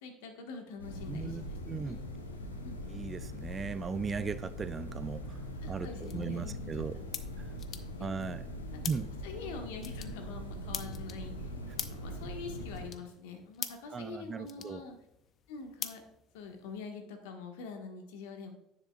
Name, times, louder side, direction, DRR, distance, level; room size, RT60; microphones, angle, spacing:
voice 1, 0.0-2.0 2.6-2.8 5.6-6.7 7.3-7.5 8.0-8.4 8.7-8.8 9.2-11.5 11.9-15.0 15.5-16.0 16.3-18.5, left 4 dB, 65° left, 5 dB, 1.3 m, -45 dB
sound 1, 0.8-12.9, equal, 85° left, 0.9 m, -42 dB
voice 2, 1.1-1.4 1.7-2.0 2.9-7.0 8.0-8.4 8.8-9.1 13.9-14.8, right 5 dB, 30° right, 14 dB, 0.4 m, -37 dB
sound 2, 5.3-16.8, left 8 dB, 45° left, 0.6 m, -46 dB
10.0 x 7.3 x 2.3 m, 0.83 s
figure-of-eight pair, 60°, 0 cm